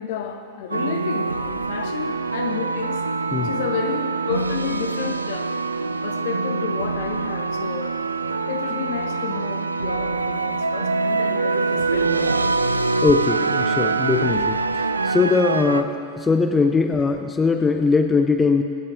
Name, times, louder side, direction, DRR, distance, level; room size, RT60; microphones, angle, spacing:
voice 1, 0.0-3.0 3.4-5.5 6.0-8.0 8.3-12.5, left 7 dB, 55° left, 5 dB, 0.9 m, -31 dB
sound 1, 0.7-15.8, right 3 dB, 80° right, 0.3 m, -24 dB
voice 2, 13.0-18.6, left 4 dB, 15° left, 5 dB, 0.5 m, -20 dB
25.5 x 8.4 x 2.5 m, 2.4 s
figure-of-eight pair, 90°, 0 cm